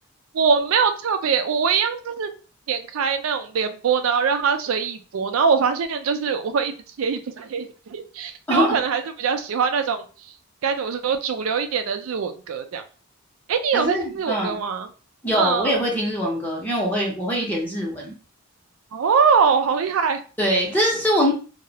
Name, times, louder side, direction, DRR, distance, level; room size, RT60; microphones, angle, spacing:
voice 1, 0.3-2.3 2.7-10.1 10.6-12.8 13.5-14.9 15.4-15.8 18.9-20.2, right 6 dB, 75° right, 8 dB, 0.4 m, -23 dB
voice 2, 13.7-14.6 15.2-18.1 20.4-21.3, equal, 10° left, -2 dB, 0.6 m, -23 dB
2.3 x 2.0 x 2.7 m, 0.36 s
head